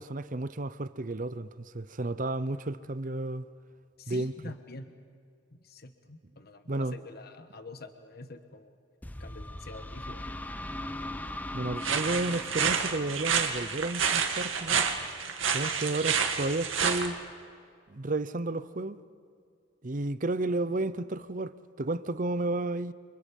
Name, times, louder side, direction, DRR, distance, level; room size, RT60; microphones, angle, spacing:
voice 1, 0.0-3.5 4.1-4.5 6.7-7.0 11.5-14.9 15.5-17.2 17.9-19.0 19.8-22.9, right 2 dB, 40° right, 0.7 m, -32 dB
voice 2, 4.0-4.9 5.5-8.7 9.2-10.3, left 2 dB, 50° left, 1.4 m, -46 dB
sound 1, 9.0-14.7, left 1 dB, 10° left, 0.7 m, -40 dB
sound 2, 11.8-17.1, right 6 dB, 80° right, 2.2 m, -29 dB
29.0 x 27.5 x 5.4 m
head